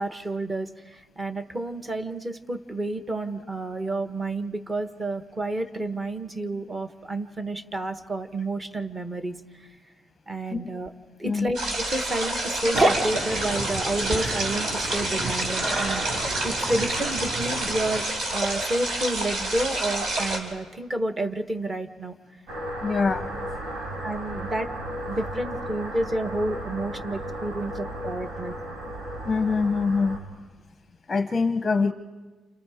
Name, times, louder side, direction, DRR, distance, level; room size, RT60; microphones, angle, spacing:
voice 1, 0.0-9.4 10.3-10.9 11.2-16.1 16.4-22.1 24.0-24.7 25.1-28.5, right 2 dB, 15° right, 8 dB, 1.2 m, -30 dB
sound 1, 11.5-20.4, right 1 dB, 55° right, 5.1 m, -29 dB
sound 2, 12.7-18.0, right 2 dB, 35° right, 1.6 m, -29 dB
sound 3, 22.5-30.2, equal, 70° right, 5.3 m, -34 dB
voice 2, 22.8-23.3 29.3-30.2 31.1-31.9, left 4 dB, 15° left, 7 dB, 0.9 m, -24 dB
30.0 x 29.0 x 5.0 m, 1.3 s
cardioid pair, 160°, 0 cm